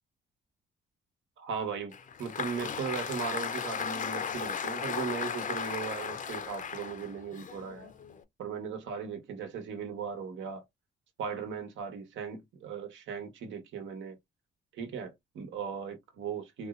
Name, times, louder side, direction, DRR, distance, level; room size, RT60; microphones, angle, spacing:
voice 1, 1.4-7.9 8.4-10.6 11.2-14.2 14.7-16.7, right 6 dB, 75° right, 1.2 m, -38 dB
Applause, 1.9-8.2, left 7 dB, 40° left, 0.6 m, -36 dB
4.0 x 2.0 x 2.4 m
cardioid pair, 90°, 20 cm